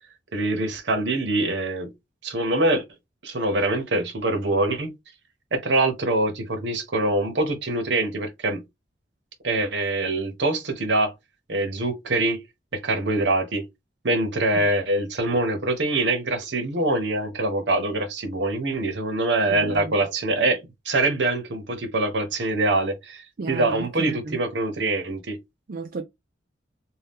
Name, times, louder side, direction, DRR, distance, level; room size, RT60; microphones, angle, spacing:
voice 1, 0.3-1.9 2.2-2.8 3.2-4.9 5.5-8.6 9.4-11.1 11.5-12.4 12.7-13.7 14.0-23.2 23.5-25.4, right 2 dB, 75° right, 0.9 m, -24 dB
voice 2, 19.5-19.9 23.4-24.4 25.7-26.0, right 3 dB, 50° right, 0.4 m, -33 dB
2.7 x 2.2 x 3.5 m
head